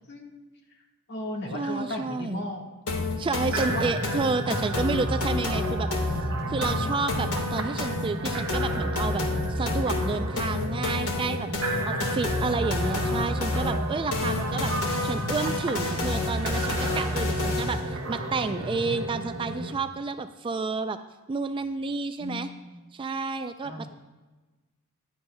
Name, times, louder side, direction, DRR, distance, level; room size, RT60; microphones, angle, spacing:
voice 1, 0.1-0.4 1.1-2.6 2.9-3.9 11.9-12.2 22.2-22.8 23.6-23.9, left 1 dB, 50° left, 0 dB, 1.5 m, -37 dB
voice 2, 1.5-2.4 3.2-9.2 9.5-11.5 11.9-14.7 15.0-21.0 21.3-22.5 22.9-23.9, right 4 dB, 25° right, 10 dB, 0.3 m, -30 dB
sound 1, 2.9-17.9, left 3 dB, 80° left, 1.5 m, -29 dB
sound 2, 3.5-19.7, right 1 dB, 60° right, 1.2 m, -32 dB
14.5 x 10.5 x 2.2 m, 1.2 s
head